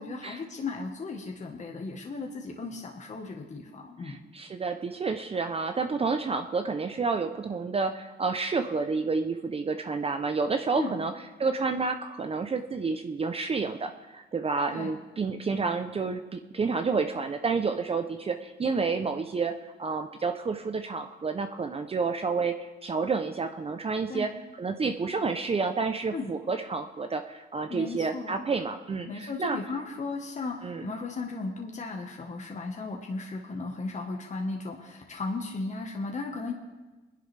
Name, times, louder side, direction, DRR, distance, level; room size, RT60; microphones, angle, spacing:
voice 1, 0.0-4.2 10.7-11.0 14.7-14.9 24.1-24.4 26.1-26.3 27.7-28.4 29.1-36.5, left 3 dB, 35° left, 1 dB, 1.4 m, -36 dB
voice 2, 4.0-11.1 11.4-24.3 24.6-29.6 30.6-30.8, right 4 dB, 30° right, 7 dB, 0.7 m, -30 dB
22.5 x 10.5 x 3.4 m, 1.2 s
cardioid pair, 90°, 20 cm